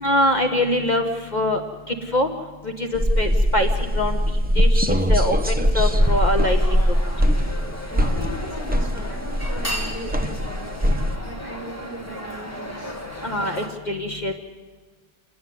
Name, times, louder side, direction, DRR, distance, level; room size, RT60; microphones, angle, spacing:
voice 1, 0.0-1.0 1.3-1.6 1.9-2.3 3.2-3.7 3.9-4.2 4.6-4.8 5.1-6.6 13.2-14.3, left 1 dB, 40° left, 3 dB, 1.3 m, -23 dB
sound 1, 2.9-11.2, equal, 10° right, 0.8 m, -21 dB
sound 2, 5.7-13.7, equal, 10° left, 2.1 m, -35 dB
voice 2, 7.9-13.0, equal, 35° right, -1 dB, 6.7 m, -38 dB
28.5 x 10.0 x 9.4 m, 1.4 s
omnidirectional pair, 1.2 m